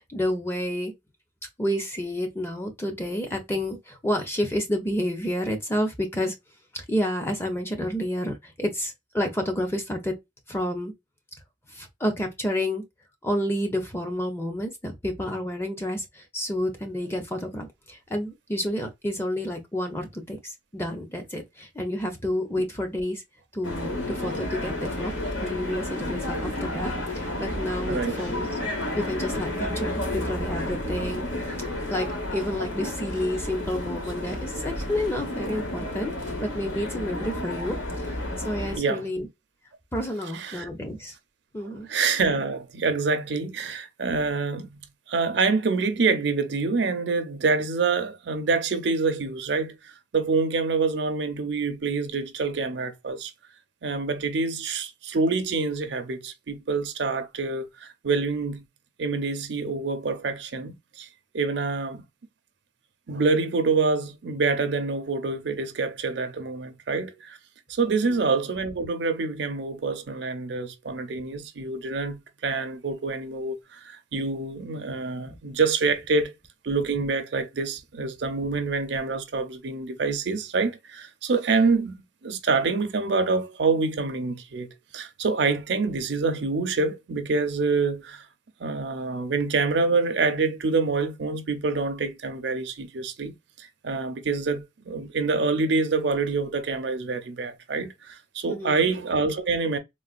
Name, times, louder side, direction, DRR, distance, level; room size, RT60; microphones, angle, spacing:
voice 1, 0.1-0.9 1.6-6.3 6.7-10.2 10.5-10.9 11.7-12.8 13.2-23.2 23.5-25.1 25.4-28.6 29.0-31.2 31.9-36.1 36.4-37.8 38.4-39.3 39.9-41.1 41.5-41.9 67.9-68.2 98.5-98.9, left 1 dB, 10° left, 0.6 m, -30 dB
sound 1, 23.6-38.8, left 1 dB, 80° left, 1.2 m, -31 dB
voice 2, 40.3-40.7 41.9-44.8 45.1-53.3 53.8-58.6 59.0-61.1 61.3-62.0 63.1-67.4 67.7-76.3 76.6-88.2 88.6-99.8, right 4 dB, 65° right, 0.5 m, -26 dB
3.8 x 2.1 x 2.4 m
head